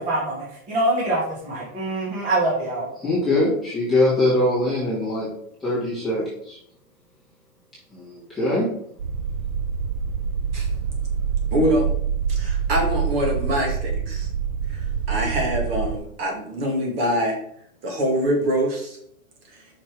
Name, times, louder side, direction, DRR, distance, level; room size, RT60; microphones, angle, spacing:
voice 1, 0.1-2.9, right 2 dB, 20° right, -4 dB, 1.5 m, -24 dB
voice 2, 3.0-5.3 5.6-6.6 7.9-8.7, left 1 dB, ahead, -11 dB, 1.6 m, -22 dB
sound 1, 9.0-16.0, right 7 dB, 65° right, 0.8 m, -26 dB
voice 3, 11.5-11.9 12.3-14.3 14.7-17.4 17.8-19.0 19.5-19.6, equal, 40° right, 1 dB, 1.9 m, -24 dB
5.7 x 5.1 x 4.5 m, 0.69 s
supercardioid pair, 180°, 43 cm